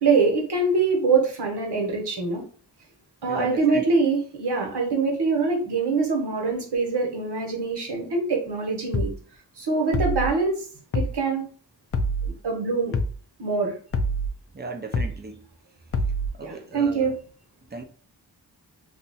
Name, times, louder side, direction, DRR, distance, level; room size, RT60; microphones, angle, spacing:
voice 1, 0.0-2.4 3.2-9.1 9.6-10.6 10.9-11.4 12.4-12.9 13.4-13.7 16.4-17.1, right 4 dB, 70° right, 1.2 m, -24 dB
voice 2, 3.2-3.8 14.5-15.4 16.4-17.2 17.7-17.8, right 3 dB, 25° right, 0.6 m, -36 dB
sound 1, 8.9-9.2 9.9-10.3 10.9-11.2 11.9-12.3 12.9-13.2 13.9-14.3 14.9-15.2 15.9-16.3, equal, 35° left, 0.4 m, -25 dB
2.6 x 2.3 x 4.1 m
wide cardioid pair, 80°, 41 cm